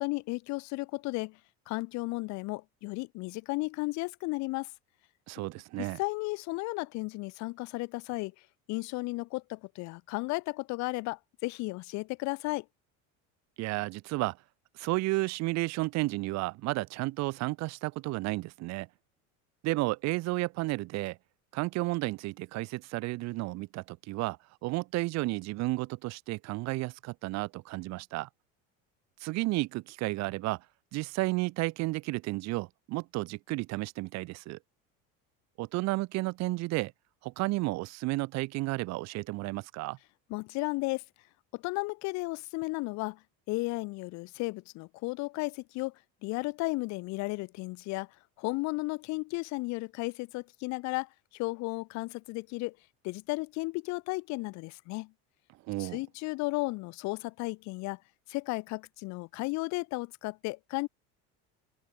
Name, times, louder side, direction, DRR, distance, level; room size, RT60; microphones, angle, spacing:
voice 1, 0.0-1.4 1.7-4.7 5.8-8.3 8.7-12.7 40.3-41.0 41.5-43.2 43.5-45.9 46.2-48.1 48.4-52.8 53.0-55.1 55.8-58.0 58.3-60.9, left 24 dB, 60° left, 5.5 m, -34 dB
voice 2, 5.3-6.0 13.6-14.4 14.8-18.9 19.6-21.2 21.5-24.4 24.6-28.3 29.2-30.6 30.9-34.6 35.6-36.9 37.2-40.0 55.7-56.0, right 21 dB, 55° right, 7.4 m, -32 dB
cardioid pair, 160°, 31 cm